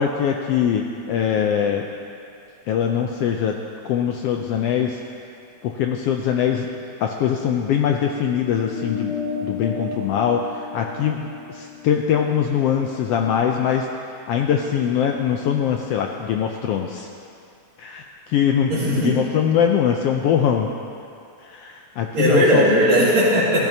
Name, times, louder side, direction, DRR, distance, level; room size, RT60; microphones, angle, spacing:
voice 1, 0.0-1.9 2.7-3.6 3.8-5.0 5.6-6.7 7.0-9.1 9.4-17.1 17.8-20.7 21.4-22.7, left 8 dB, 85° left, 2 dB, 1.3 m, -22 dB
sound 1, 8.5-13.3, left 5 dB, 30° right, 3.8 m, -33 dB
voice 2, 18.7-19.2 22.1-23.7, equal, 70° right, -8 dB, 3.4 m, -17 dB
16.0 x 14.0 x 2.8 m, 2.5 s
omnidirectional pair, 3.3 m